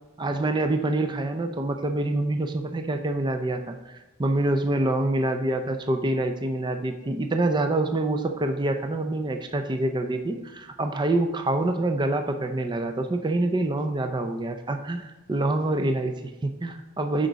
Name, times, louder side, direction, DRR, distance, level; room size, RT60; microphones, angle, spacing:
voice 1, 0.2-17.3, right 2 dB, 20° right, 7 dB, 0.4 m, -26 dB
8.2 x 5.1 x 4.0 m, 1.1 s
head